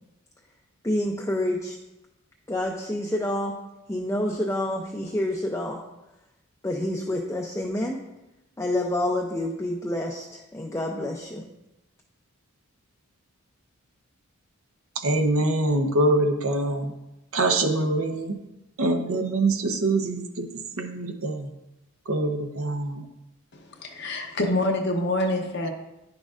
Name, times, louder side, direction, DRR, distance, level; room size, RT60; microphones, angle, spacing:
voice 1, 0.8-1.8 2.5-3.6 3.9-5.8 6.6-8.0 8.6-11.4, left 1 dB, 15° left, -1 dB, 0.4 m, -28 dB
voice 2, 15.0-16.9 17.3-18.4 18.8-21.5 22.1-23.1, right 2 dB, 70° right, 6 dB, 0.7 m, -24 dB
voice 3, 23.5-25.7, left 1 dB, 50° left, 2 dB, 0.7 m, -26 dB
10.0 x 6.3 x 2.4 m, 0.94 s
head